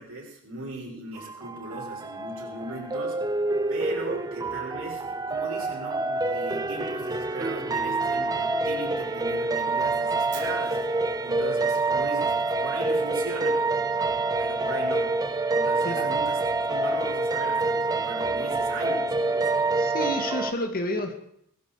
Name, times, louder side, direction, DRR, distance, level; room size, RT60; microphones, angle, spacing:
voice 1, 0.0-3.2 3.7-10.8 11.2-13.6 14.4-15.1 15.5-16.4 16.6-19.6, right 2 dB, 65° right, -3 dB, 7.0 m, -38 dB
sound 1, 1.2-20.5, right 3 dB, 15° right, 0.7 m, -27 dB
Fire, 10.3-12.4, right 6 dB, 35° right, 3.8 m, -48 dB
voice 2, 15.8-16.2 19.7-21.2, left 1 dB, 40° left, 5 dB, 2.0 m, -30 dB
22.0 x 13.0 x 5.0 m, 0.75 s
head